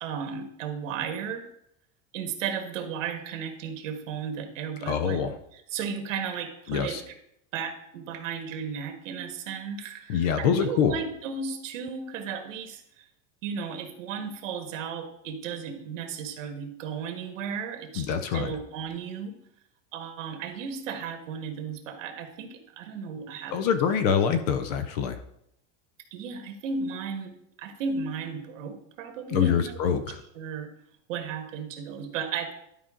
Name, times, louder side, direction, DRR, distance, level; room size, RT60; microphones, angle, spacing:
voice 1, 0.0-1.5 2.1-5.3 5.7-7.1 7.5-12.8 13.4-19.3 19.9-23.7 26.1-27.3 27.6-30.0 30.4-30.7 31.1-32.5, right 6 dB, 80° right, 5 dB, 1.6 m, -34 dB
voice 2, 4.8-5.4 6.7-7.0 10.1-11.0 18.0-18.5 23.5-25.2 29.3-30.2, left 7 dB, 35° left, 11 dB, 0.4 m, -25 dB
11.0 x 5.2 x 3.7 m, 0.75 s
supercardioid pair, 180°, 38 cm